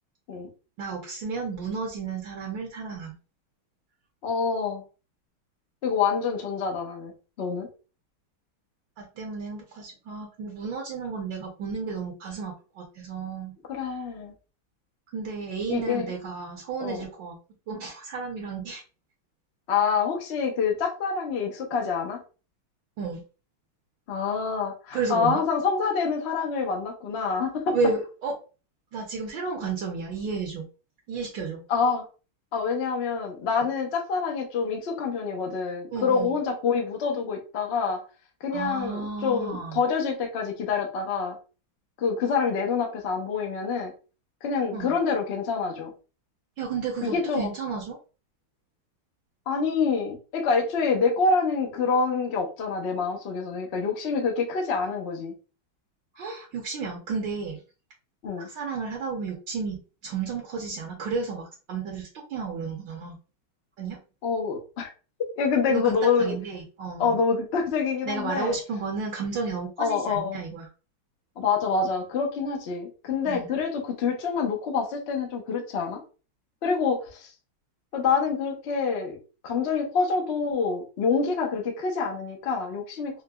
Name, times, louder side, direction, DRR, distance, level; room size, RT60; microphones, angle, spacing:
voice 1, 0.8-3.1 9.0-13.5 15.1-17.4 17.7-18.8 23.0-23.2 24.9-25.4 27.7-28.3 28.9-30.7 31.1-31.6 33.5-33.6 35.9-36.4 38.5-39.8 44.7-44.9 46.6-48.0 56.1-57.6 58.4-63.2 63.8-64.0 65.7-67.2 68.0-70.7 73.2-73.5, right 4 dB, 70° right, -1 dB, 1.4 m, -32 dB
voice 2, 4.2-4.8 5.8-7.1 7.4-7.7 13.7-14.3 15.7-16.1 16.8-17.1 19.7-22.2 24.1-27.7 31.7-32.1 32.5-38.0 38.4-41.4 42.0-43.9 44.4-45.9 47.0-47.5 49.5-55.3 58.2-58.5 64.2-64.9 65.4-66.3 67.0-68.5 69.8-70.4 71.4-76.0 76.6-77.3 77.9-79.2 79.4-83.2, left 5 dB, 80° left, 2 dB, 0.5 m, -26 dB
4.7 x 2.1 x 2.3 m, 0.34 s
omnidirectional pair, 2.3 m